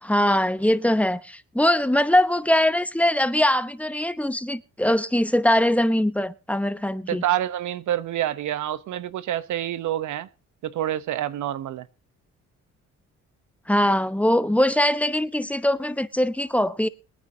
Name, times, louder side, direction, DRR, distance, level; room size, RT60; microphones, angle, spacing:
voice 1, 0.0-7.2 13.7-16.9, left 1 dB, 5° left, 0.8 m, -22 dB
voice 2, 7.1-10.3 10.6-11.9, right 12 dB, 75° right, 1.0 m, -27 dB
22.5 x 9.7 x 2.8 m
cardioid pair, 90°, 30 cm